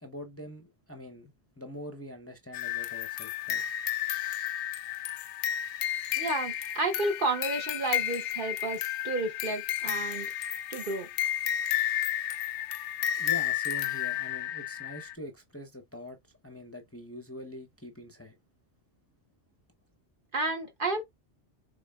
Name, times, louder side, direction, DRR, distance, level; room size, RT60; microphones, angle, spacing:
voice 1, 0.0-3.6 13.1-16.2 16.4-18.4, equal, 15° left, 0.6 m, -44 dB
sound 1, 2.5-15.1, left 11 dB, 80° left, 0.9 m, -32 dB
voice 2, 6.2-10.3 10.7-11.1 20.3-21.0, right 2 dB, 50° right, 0.9 m, -31 dB
5.6 x 3.7 x 2.3 m
omnidirectional pair, 1.2 m